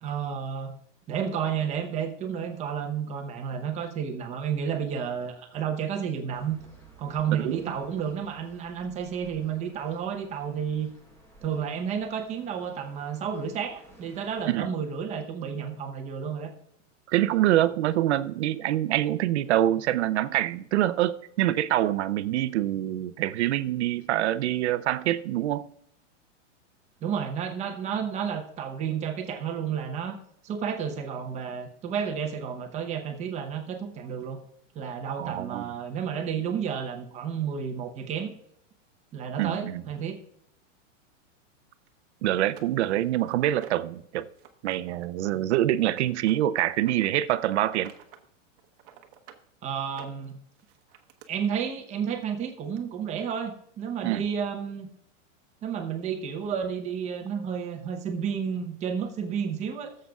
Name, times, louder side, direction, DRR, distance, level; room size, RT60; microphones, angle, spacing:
voice 1, 0.0-0.8 1.1-6.6 7.0-10.9 11.4-16.5 27.0-30.2 30.4-34.4 34.7-38.3 39.1-40.2 49.6-50.4 51.3-54.9 55.6-60.0, right 7 dB, 20° right, 0.9 m, -31 dB
sound 1, 6.3-14.5, right 2 dB, 5° left, 1.1 m, -55 dB
voice 2, 7.4-7.7 14.5-14.7 17.1-25.7 35.2-35.7 39.4-39.8 42.2-44.3 44.6-47.9 54.0-54.2, right 13 dB, 60° right, 0.6 m, -25 dB
sound 2, 41.9-42.0 42.4-44.0 44.3-44.8 45.0-47.1 47.6-48.3 48.6-49.4 49.8-51.3 52.2-52.3 52.8-52.9, right 10 dB, 45° right, 1.1 m, -50 dB
16.5 x 7.6 x 2.3 m
supercardioid pair, 160°, 38 cm